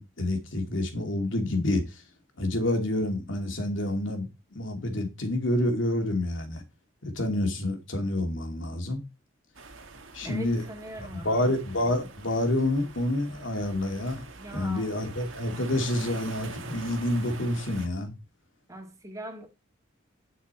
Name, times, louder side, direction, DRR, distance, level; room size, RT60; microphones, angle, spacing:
voice 1, 0.0-2.0 2.4-6.6 7.0-9.0 10.1-10.6 11.0-14.2 14.5-18.2, left 1 dB, 75° left, 2.7 m, -28 dB
sound 1, 9.5-17.9, right 3 dB, 85° right, 1.7 m, -44 dB
voice 2, 10.2-11.5 14.4-15.2 18.7-19.5, right 1 dB, 15° right, 2.1 m, -42 dB
9.5 x 6.9 x 4.4 m
head